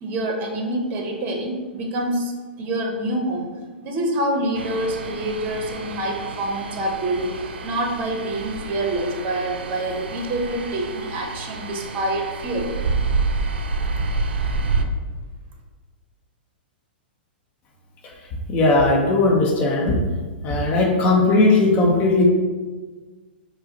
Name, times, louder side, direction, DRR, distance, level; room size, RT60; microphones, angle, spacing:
voice 1, 0.0-2.3 2.6-3.5 3.8-7.3 7.6-12.7, right 1 dB, 35° right, 1 dB, 0.8 m, -26 dB
sound 1, 4.6-14.9, right 3 dB, 80° right, 0.4 m, -28 dB
voice 2, 18.5-20.0 20.4-22.2, left 2 dB, 35° left, -2 dB, 0.7 m, -18 dB
4.6 x 2.1 x 2.8 m, 1.4 s
hypercardioid pair, 120°, 6 cm